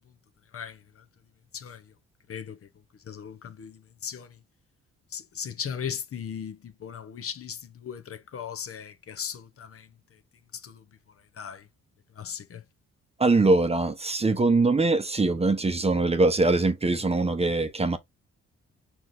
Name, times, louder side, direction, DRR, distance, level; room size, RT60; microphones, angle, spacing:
voice 1, 3.1-4.3 5.1-9.9 10.6-10.8 11.4-11.6 12.2-12.6, left 8 dB, 50° left, 0.8 m, -37 dB
voice 2, 13.2-18.0, right 3 dB, 20° right, 0.7 m, -22 dB
4.7 x 2.6 x 3.7 m
cardioid pair, 85°, 29 cm